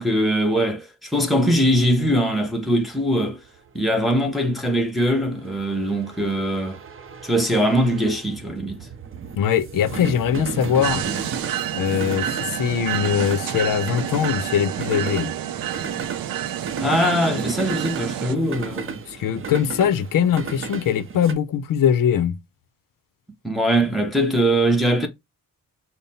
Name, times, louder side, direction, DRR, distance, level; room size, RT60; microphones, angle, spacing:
voice 1, 0.0-3.4 3.7-6.8 7.2-8.9 16.8-19.0 23.4-25.1, equal, ahead, 0.7 m, -21 dB
sound 1, 1.8-21.3, right 5 dB, 35° right, 0.6 m, -34 dB
voice 2, 9.4-11.0 11.7-15.3 19.1-22.4, left 8 dB, 70° left, 0.6 m, -21 dB
sound 2, 10.8-18.3, right 11 dB, 75° right, 0.5 m, -29 dB
5.5 x 2.1 x 4.1 m
wide cardioid pair, 170°, 35 cm